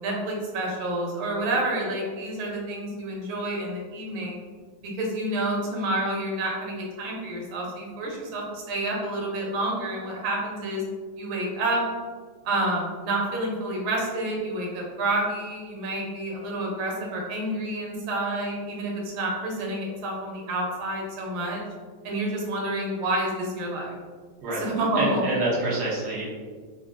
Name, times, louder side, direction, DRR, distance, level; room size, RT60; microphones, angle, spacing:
voice 1, 0.0-4.4 4.8-10.8 11.2-11.8 12.4-21.6 22.0-23.9 24.6-25.2, right 1 dB, 85° right, -2 dB, 1.6 m, -29 dB
voice 2, 25.0-26.3, right 1 dB, 60° right, -6 dB, 1.2 m, -26 dB
3.5 x 2.2 x 2.5 m, 1.6 s
omnidirectional pair, 2.2 m